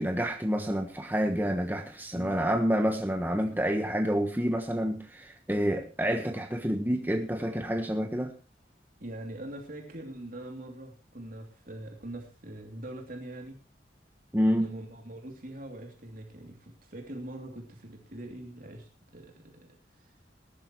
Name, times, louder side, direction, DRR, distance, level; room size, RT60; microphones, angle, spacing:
voice 1, 0.0-8.3 14.3-14.7, equal, 10° right, 1.2 m, -28 dB
voice 2, 9.0-13.6 14.5-19.7 19.9-20.1, right 1 dB, 50° right, 2.9 m, -43 dB
20.0 x 11.5 x 3.1 m
head